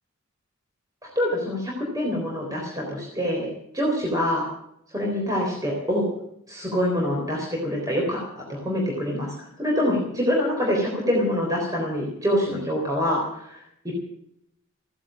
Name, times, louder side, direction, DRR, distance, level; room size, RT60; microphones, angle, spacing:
voice 1, 1.2-4.4 4.9-6.1 6.5-13.9, equal, 15° right, -2 dB, 3.8 m, -25 dB
16.0 x 11.0 x 7.5 m, 0.78 s
head